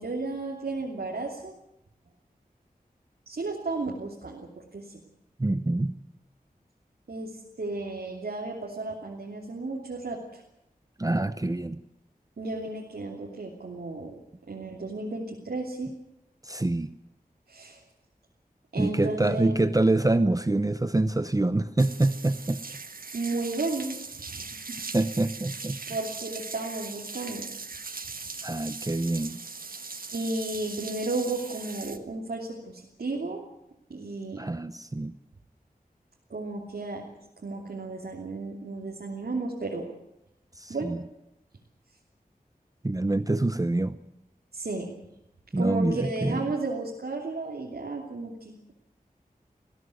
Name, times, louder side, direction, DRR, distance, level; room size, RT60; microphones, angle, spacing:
voice 1, 0.0-1.5 3.3-5.0 7.1-10.4 12.4-14.2 14.4-15.9 17.5-17.8 18.7-19.6 23.1-24.8 25.9-27.5 30.1-33.4 33.9-34.5 36.3-37.0 37.4-39.8 40.7-40.9 44.5-44.9 45.6-48.7, right 3 dB, 85° right, -2 dB, 3.0 m, -33 dB
voice 2, 5.4-5.9 11.0-11.8 16.4-16.9 18.8-22.6 24.9-25.8 28.4-29.4 34.4-35.1 40.6-41.0 42.8-43.9 45.5-46.4, right 2 dB, 20° right, 12 dB, 0.7 m, -26 dB
sound 1, 21.8-32.0, right 4 dB, 70° right, 1.5 m, -40 dB
20.0 x 16.0 x 9.4 m, 0.85 s
wide cardioid pair, 80°, 15 cm